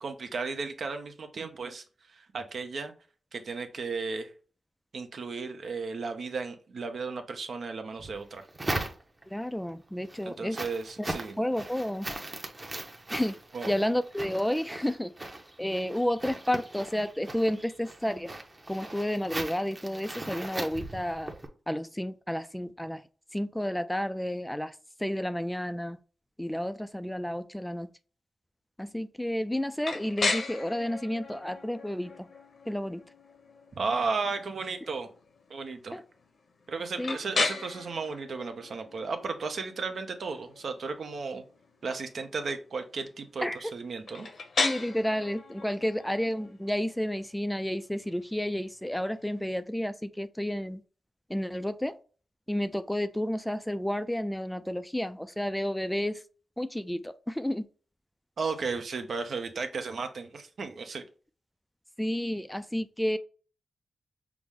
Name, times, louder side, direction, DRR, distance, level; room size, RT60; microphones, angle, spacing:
voice 1, 0.0-2.9 3.3-4.3 4.9-8.5 10.3-11.4 13.5-13.7 33.7-35.1 35.5-36.0 36.7-41.4 41.8-44.3 58.4-61.0, right 4 dB, 70° right, 0.7 m, -34 dB
sound 1, 8.0-9.4 9.9-21.5, right 2 dB, 25° right, 0.8 m, -39 dB
voice 2, 9.3-10.6 11.0-11.1 11.4-12.1 13.1-13.4 13.7-15.1 15.6-18.3 18.7-21.3 21.7-23.0 23.3-24.7 25.0-26.0 26.4-27.9 28.8-32.3 32.7-33.0 35.9-36.0 37.0-37.2 43.4-43.6 44.6-50.8 51.3-51.9 52.5-56.2 56.6-57.7 62.0-63.2, left 1 dB, 5° left, 0.3 m, -31 dB
sound 2, 29.8-49.6, left 3 dB, 65° left, 0.8 m, -37 dB
6.0 x 2.0 x 3.6 m
cardioid pair, 90°, 0 cm